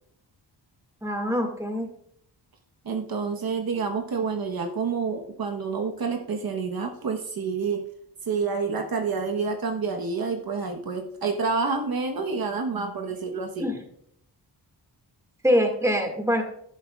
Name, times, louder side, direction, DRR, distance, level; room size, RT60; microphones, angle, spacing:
voice 1, 1.0-1.9 13.6-13.8 15.4-16.4, equal, 5° right, 3 dB, 1.9 m, -24 dB
voice 2, 2.8-7.8 8.2-13.7, right 5 dB, 55° right, 4 dB, 1.2 m, -28 dB
11.5 x 11.0 x 2.4 m, 0.70 s
wide cardioid pair, 135°, 42 cm